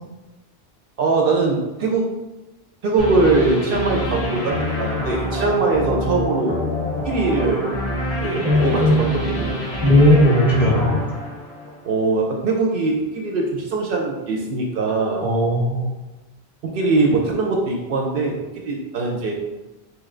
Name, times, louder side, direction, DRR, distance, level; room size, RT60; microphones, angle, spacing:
voice 1, 1.0-2.0 2.8-6.6 7.0-7.7 8.2-9.6 11.8-15.2 16.6-18.3 18.6-19.3, right 3 dB, 65° right, 0 dB, 0.7 m, -21 dB
sound 1, 3.0-12.0, left 1 dB, 80° left, 1.2 m, -26 dB
voice 2, 8.4-9.2 9.8-11.0 15.2-15.9, equal, ahead, -4 dB, 0.7 m, -17 dB
3.2 x 2.9 x 3.7 m, 1.1 s
omnidirectional pair, 1.0 m